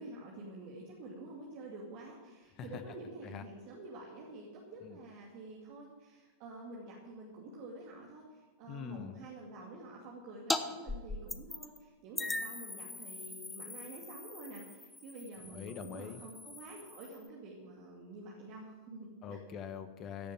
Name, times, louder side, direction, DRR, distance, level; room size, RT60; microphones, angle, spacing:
voice 1, 0.0-19.4, right 2 dB, 45° right, -3 dB, 2.5 m, -48 dB
voice 2, 8.7-9.2 15.5-16.2 19.2-20.3, left 7 dB, 35° left, 10 dB, 1.3 m, -43 dB
sound 1, 10.5-10.6 10.9-11.8 12.2-17.3, left 3 dB, 10° left, 0.9 m, -40 dB
15.5 x 7.1 x 9.2 m, 1.3 s
figure-of-eight pair, 90°, 0 cm